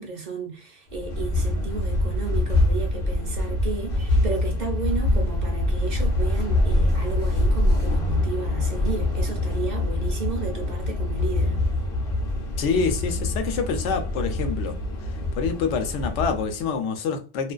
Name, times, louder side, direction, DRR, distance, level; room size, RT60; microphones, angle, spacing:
voice 1, 0.0-11.6, right 5 dB, 55° right, 0.5 m, -33 dB
sound 1, 0.9-16.6, left 1 dB, 55° left, 0.9 m, -24 dB
voice 2, 12.6-17.5, left 5 dB, 85° left, 0.9 m, -27 dB
2.4 x 2.2 x 2.3 m
omnidirectional pair, 1.2 m